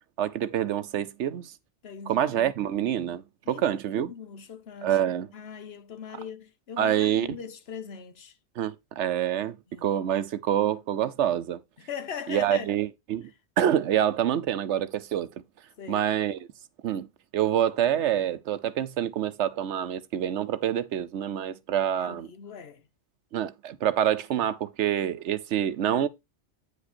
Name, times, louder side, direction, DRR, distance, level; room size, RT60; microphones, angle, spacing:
voice 1, 0.2-1.5 2.1-4.1 4.8-5.3 6.8-7.3 8.6-9.6 9.8-11.6 12.3-13.3 13.6-15.3 15.9-16.4 16.8-17.1 17.3-22.3 23.3-26.1, right 10 dB, 90° right, 1.0 m, -26 dB
voice 2, 1.8-2.2 3.4-5.0 5.3-8.3 9.7-9.9 11.8-12.7 15.8-16.1 22.0-22.9, left 7 dB, 65° left, 1.1 m, -40 dB
9.0 x 5.1 x 4.3 m
omnidirectional pair, 1.2 m